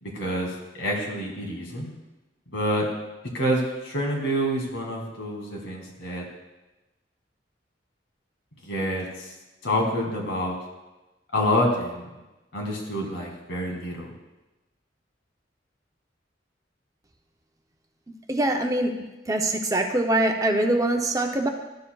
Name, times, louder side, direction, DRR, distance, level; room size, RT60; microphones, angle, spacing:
voice 1, 0.0-1.9 2.5-2.9 3.3-6.3 8.6-9.3 9.6-10.6 11.3-12.1 12.5-14.1, equal, 85° left, -1 dB, 2.0 m, -27 dB
voice 2, 18.3-18.9 19.3-21.5, right 1 dB, 20° right, 3 dB, 0.6 m, -23 dB
12.5 x 6.9 x 2.3 m, 1.1 s
head